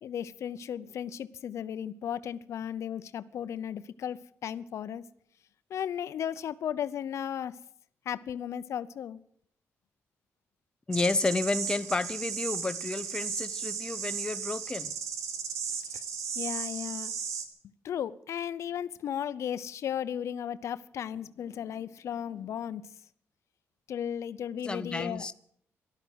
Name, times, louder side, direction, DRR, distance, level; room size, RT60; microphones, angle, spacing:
voice 1, 0.0-5.0 5.7-7.6 8.1-9.2 15.9-16.0 16.3-17.1 17.8-22.8 23.9-25.3, left 9 dB, 70° left, 0.7 m, -35 dB
voice 2, 10.9-14.9 24.6-25.3, left 3 dB, 20° left, 0.6 m, -31 dB
sound 1, 10.9-17.5, right 6 dB, 80° right, 1.8 m, -35 dB
14.0 x 12.0 x 7.9 m
cardioid pair, 110°, 5 cm